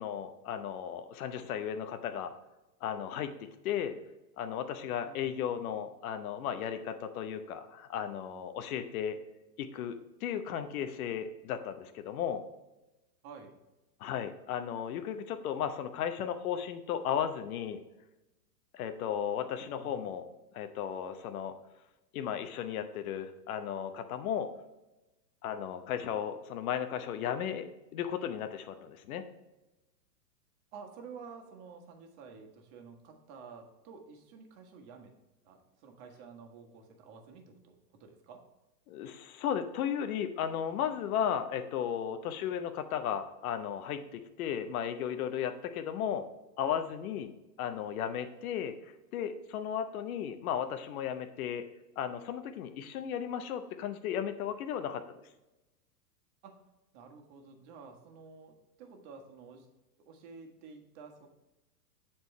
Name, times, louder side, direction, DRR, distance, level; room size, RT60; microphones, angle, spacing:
voice 1, 0.0-2.3 2.8-3.3 3.6-3.9 4.4-9.2 9.6-12.4 14.0-17.8 18.7-20.3 20.5-21.5 22.1-24.5 25.4-27.7 27.9-29.2 38.9-46.2 46.6-47.3 47.6-48.7 49.1-51.6 52.0-55.0, left 9 dB, 60° left, 9 dB, 0.8 m, -35 dB
voice 2, 13.2-13.6 19.6-20.0 30.7-35.1 35.4-38.4 56.4-56.6 56.9-59.7 60.0-61.3, right 5 dB, 45° right, 4 dB, 1.5 m, -51 dB
7.8 x 4.4 x 4.3 m, 1.0 s
hypercardioid pair, 120°, 49 cm